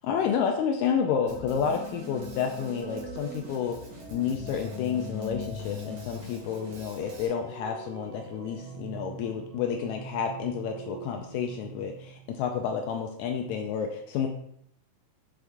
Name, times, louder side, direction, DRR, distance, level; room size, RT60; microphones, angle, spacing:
voice 1, 0.0-3.8 4.1-14.3, left 7 dB, 80° left, 4 dB, 1.7 m, -30 dB
sound 1, 0.8-12.7, right 1 dB, 80° right, 1.2 m, -43 dB
Drum kit, 1.3-7.3, equal, 60° right, 2.4 m, -46 dB
7.6 x 3.6 x 3.5 m, 0.70 s
omnidirectional pair, 3.8 m